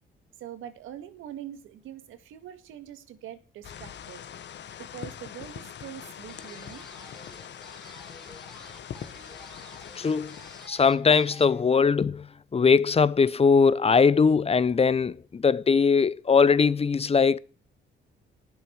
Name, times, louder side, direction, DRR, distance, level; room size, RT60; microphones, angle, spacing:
voice 1, 0.4-4.2 4.8-6.8, right 10 dB, 85° right, 2.0 m, -43 dB
sound 1, 3.6-10.7, left 9 dB, 65° left, 1.4 m, -43 dB
sound 2, 6.3-11.6, left 1 dB, ahead, 4.2 m, -50 dB
voice 2, 10.0-10.4 10.7-17.4, left 5 dB, 30° left, 0.8 m, -21 dB
19.0 x 7.4 x 4.6 m
cardioid pair, 90°, 20 cm